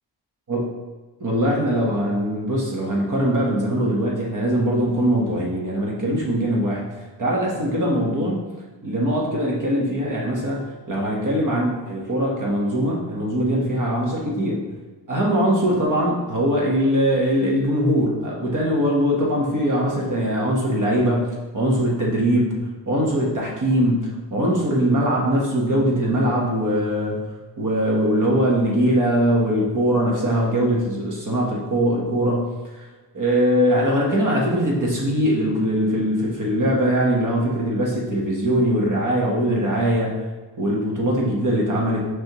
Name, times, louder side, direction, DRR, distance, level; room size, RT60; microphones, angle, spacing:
voice 1, 1.2-6.8 7.2-8.4 8.8-14.6 15.1-22.6 22.9-27.2 27.6-32.5 33.1-40.2 40.6-42.1, equal, 45° right, -3 dB, 1.5 m, -21 dB
6.3 x 5.5 x 3.2 m, 1.3 s
wide cardioid pair, 150°, 43 cm